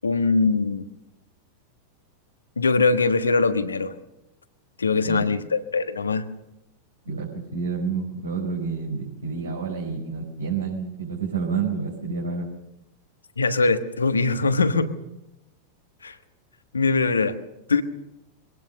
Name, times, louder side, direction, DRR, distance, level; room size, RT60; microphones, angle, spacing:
voice 1, 0.0-0.8 2.6-3.9 4.8-6.2 13.4-14.9 16.0-16.1 16.7-17.3 17.7-17.8, left 4 dB, 75° left, 10 dB, 1.3 m, -22 dB
voice 2, 7.0-12.5, right 5 dB, 75° right, -3 dB, 4.9 m, -29 dB
23.0 x 18.0 x 6.6 m, 0.89 s
figure-of-eight pair, 90°, 0 cm